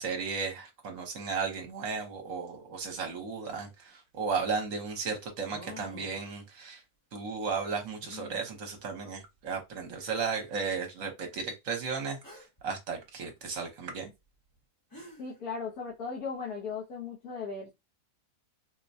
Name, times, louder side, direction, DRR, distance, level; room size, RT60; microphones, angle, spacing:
voice 1, 0.0-6.8 7.1-12.2 12.6-14.1, right 5 dB, 60° right, 1.3 m, -34 dB
sound 1, 3.9-4.0 5.4-6.3 8.0-8.4 9.4-9.5 10.1-10.2 12.2-12.6 14.6-14.7 14.9-15.4, left 2 dB, 15° left, 1.0 m, -48 dB
voice 2, 15.2-17.7, left 5 dB, 70° left, 1.4 m, -37 dB
4.4 x 2.2 x 2.6 m
omnidirectional pair, 1.6 m